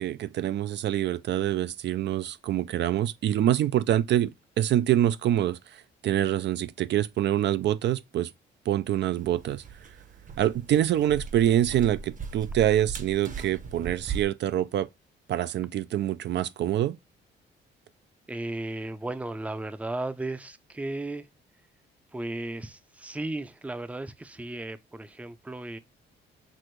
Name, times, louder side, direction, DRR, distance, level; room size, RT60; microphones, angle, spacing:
voice 1, 0.0-4.3 4.6-8.3 8.7-9.6 10.4-14.9 15.3-17.0, right 12 dB, 65° right, 0.4 m, -25 dB
sound 1, 9.2-14.3, right 5 dB, 40° right, 0.8 m, -39 dB
voice 2, 18.3-21.3 22.1-25.8, right 2 dB, 5° right, 0.5 m, -35 dB
6.0 x 2.5 x 3.1 m
cardioid pair, 90°, 20 cm